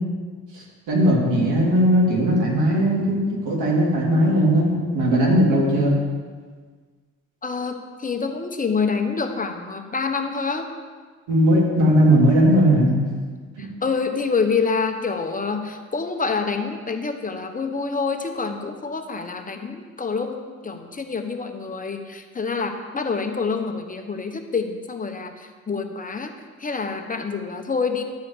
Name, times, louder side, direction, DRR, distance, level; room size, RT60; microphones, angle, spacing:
voice 1, 0.5-5.9 11.3-12.9 13.6-13.7, equal, 85° right, -3 dB, 3.1 m, -18 dB
voice 2, 7.4-10.7 13.6-26.3 26.6-28.0, left 4 dB, 25° left, 5 dB, 1.0 m, -27 dB
11.5 x 5.0 x 8.3 m, 1.5 s
cardioid pair, 90°, 30 cm